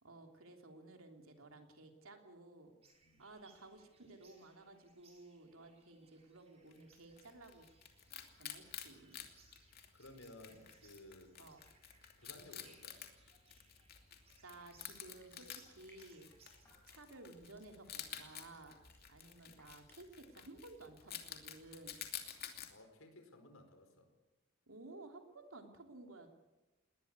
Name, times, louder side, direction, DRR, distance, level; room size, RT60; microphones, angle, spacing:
voice 1, 0.0-2.7 3.2-7.7 8.3-9.2 11.4-11.6 14.4-16.3 16.9-18.8 19.1-22.0 24.7-26.3, right 2 dB, 80° right, 4 dB, 3.3 m, -55 dB
sound 1, 2.8-16.6, right 4 dB, 30° right, 5.2 m, -70 dB
Wild animals, 6.7-22.7, left 9 dB, 45° left, 2.7 m, -51 dB
voice 2, 9.6-11.4 12.2-13.0 22.7-24.1, left 1 dB, 80° left, 7 dB, 4.8 m, -57 dB
Crushing, 15.0-20.3 20.6-20.8, left 2 dB, 10° left, 7.1 m, -69 dB
20.5 x 19.5 x 8.3 m, 1.1 s
head